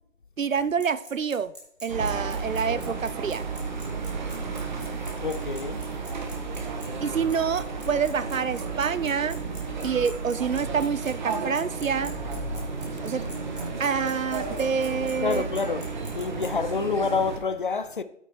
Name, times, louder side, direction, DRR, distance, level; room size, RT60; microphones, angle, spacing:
voice 1, 0.4-1.5 1.8-3.5 7.0-9.4 9.8-12.1 13.0-13.2 13.8-15.5, right 6 dB, 75° right, 0.7 m, -27 dB
Bicycle, 0.6-16.5, right 1 dB, ahead, 1.9 m, -44 dB
sound 1, 1.9-17.4, right 4 dB, 35° right, 1.7 m, -33 dB
voice 2, 5.2-5.8 15.2-15.9 16.1-18.0, left 5 dB, 40° left, 0.7 m, -27 dB
9.7 x 8.3 x 4.7 m
figure-of-eight pair, 155°, 39 cm